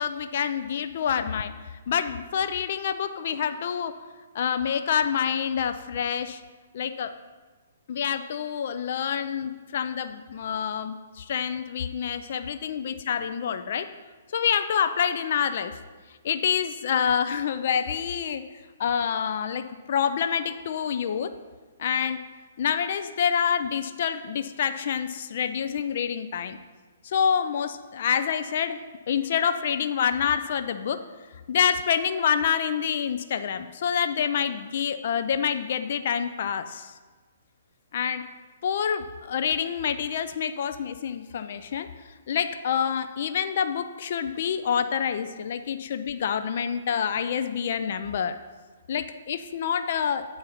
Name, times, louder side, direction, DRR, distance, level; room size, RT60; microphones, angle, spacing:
voice 1, 0.0-1.5 1.9-3.9 4.3-6.4 6.7-7.1 7.9-13.9 14.3-15.7 16.2-18.4 18.8-21.3 21.8-22.2 22.6-26.6 27.0-28.8 29.1-31.0 31.5-36.9 37.9-38.2 38.6-41.9 42.3-48.4 48.9-50.4, left 7 dB, 55° left, 9 dB, 0.4 m, -27 dB
8.4 x 3.9 x 5.6 m, 1.3 s
hypercardioid pair, 155°, 0 cm